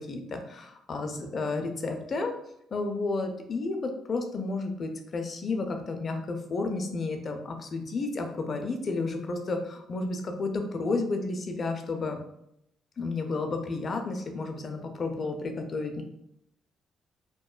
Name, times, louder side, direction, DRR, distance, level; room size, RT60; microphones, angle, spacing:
voice 1, 0.0-2.3 2.7-12.2 13.0-16.0, left 3 dB, 50° left, 4 dB, 0.4 m, -32 dB
2.8 x 2.1 x 2.3 m, 0.76 s
supercardioid pair, 55°, 0 cm